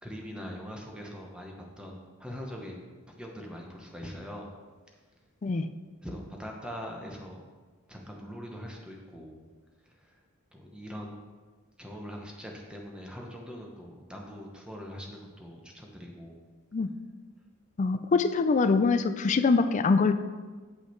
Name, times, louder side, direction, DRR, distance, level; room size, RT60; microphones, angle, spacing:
voice 1, 0.0-4.5 6.0-7.4 7.9-9.4 9.8-10.2 10.5-11.3 11.8-16.4, equal, 5° right, 0 dB, 0.9 m, -42 dB
voice 2, 17.8-20.1, left 4 dB, 35° left, 10 dB, 0.3 m, -24 dB
8.2 x 5.6 x 4.5 m, 1.4 s
head